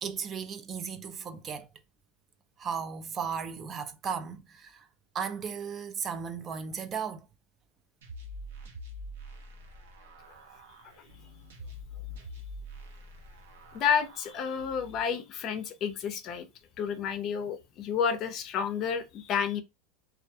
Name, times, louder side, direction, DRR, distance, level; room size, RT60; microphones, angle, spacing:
voice 1, 0.0-1.7 2.6-4.9 5.1-7.3, right 6 dB, 30° right, 0.4 m, -35 dB
sound 1, 8.0-15.0, left 1 dB, 85° right, 0.8 m, -45 dB
voice 2, 13.7-16.5 16.8-19.6, left 7 dB, 45° left, 0.5 m, -30 dB
2.3 x 2.2 x 2.6 m
supercardioid pair, 115°, 0 cm